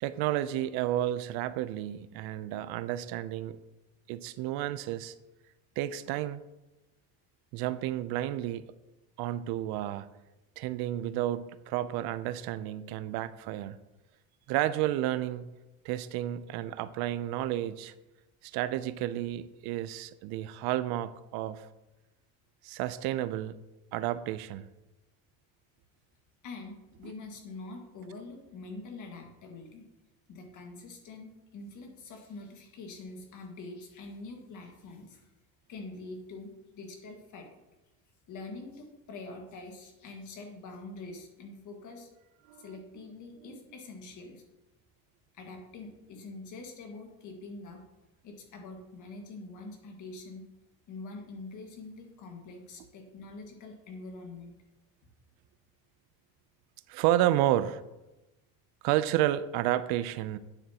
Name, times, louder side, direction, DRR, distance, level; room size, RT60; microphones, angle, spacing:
voice 1, 0.0-3.6 4.1-5.1 5.8-6.4 7.5-8.6 9.2-10.1 10.6-13.8 14.5-15.5 15.8-17.9 18.4-21.7 22.6-23.6 23.9-24.7 42.5-42.7 43.5-43.6 56.9-57.8 58.8-60.4, right 13 dB, 80° right, 14 dB, 0.5 m, -31 dB
voice 2, 26.4-29.9 30.3-35.3 35.7-37.6 38.3-42.1 42.6-44.4 45.3-47.8 48.2-50.5 50.9-54.5, left 3 dB, 55° left, 3 dB, 1.7 m, -45 dB
9.2 x 7.2 x 2.8 m, 1.0 s
cardioid pair, 135°, 37 cm